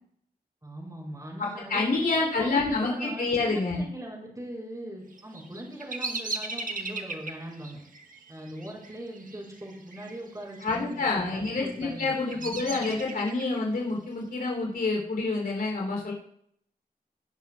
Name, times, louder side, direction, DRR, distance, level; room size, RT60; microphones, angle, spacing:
voice 1, 0.6-1.9 2.2-7.8 8.3-12.8, right 1 dB, 20° right, -3 dB, 5.0 m, -41 dB
voice 2, 1.4-3.8 10.6-16.1, left 3 dB, 85° left, -2 dB, 3.4 m, -28 dB
Bird vocalization bird call bird song, 5.1-10.2 10.4-11.0 11.6-13.6, right 3 dB, 60° right, 1.5 m, -37 dB
19.0 x 11.5 x 2.4 m, 0.67 s
wide cardioid pair, 105°, 16 cm